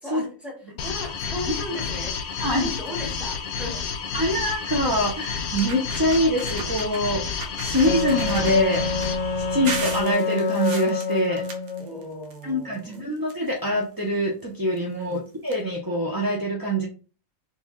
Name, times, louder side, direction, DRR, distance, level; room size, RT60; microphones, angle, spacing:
voice 1, 0.0-0.5 0.8-3.8 11.8-13.1 14.9-15.2, left 1 dB, ahead, -2 dB, 1.0 m, -36 dB
sound 1, 0.8-10.1, left 6 dB, 90° left, 1.1 m, -30 dB
sound 2, 1.6-2.0 2.5-2.6 2.9-3.1 4.3-4.4 5.1-5.2 5.5-7.0 7.4-9.1 9.6-12.4 12.7-13.8 14.7-14.8 15.1-15.2 15.5-15.6, right 3 dB, 80° right, 1.2 m, -36 dB
voice 2, 2.4-2.7 4.1-8.9 9.4-11.4 12.4-16.9, equal, 30° right, -2 dB, 0.4 m, -24 dB
Wind instrument woodwind instrument, 7.8-11.9, left 5 dB, 55° left, 0.5 m, -27 dB
3.1 x 2.8 x 3.6 m, 0.35 s
omnidirectional pair, 1.5 m